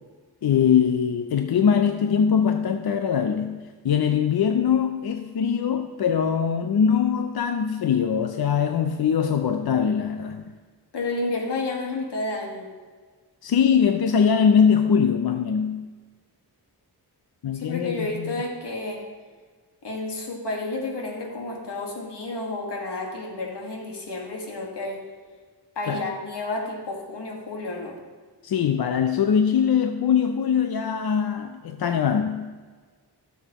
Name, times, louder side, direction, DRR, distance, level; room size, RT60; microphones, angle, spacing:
voice 1, 0.4-10.4 13.4-15.9 17.4-18.3 25.9-26.1 28.4-32.5, left 7 dB, 65° left, 7 dB, 0.5 m, -22 dB
voice 2, 10.9-12.7 17.5-19.0 19.8-25.0 25.8-28.0, left 2 dB, 85° left, 0 dB, 1.8 m, -31 dB
14.5 x 7.1 x 3.0 m, 1.5 s
wide cardioid pair, 115°, 40 cm